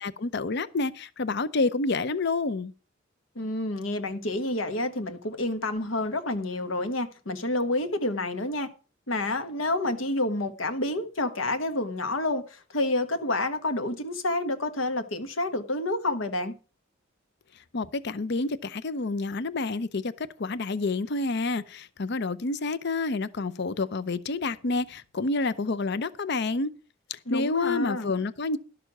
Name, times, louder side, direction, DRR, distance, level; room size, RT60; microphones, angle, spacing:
voice 1, 0.0-2.7 17.7-26.7 27.1-28.6, left 3 dB, 60° left, 0.7 m, -29 dB
voice 2, 3.3-8.7 9.1-16.5 27.3-28.1, left 2 dB, 85° left, 1.4 m, -29 dB
12.0 x 6.8 x 6.0 m
head